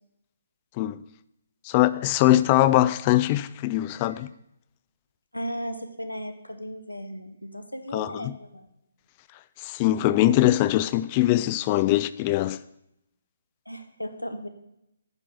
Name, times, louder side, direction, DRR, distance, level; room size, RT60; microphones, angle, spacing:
voice 1, 1.6-4.3 7.9-8.4 9.6-12.6, left 15 dB, 25° left, 0.3 m, -22 dB
voice 2, 5.3-8.7 13.7-14.5, equal, 90° left, 1.0 m, -36 dB
10.5 x 3.9 x 6.2 m
figure-of-eight pair, 135°, 0 cm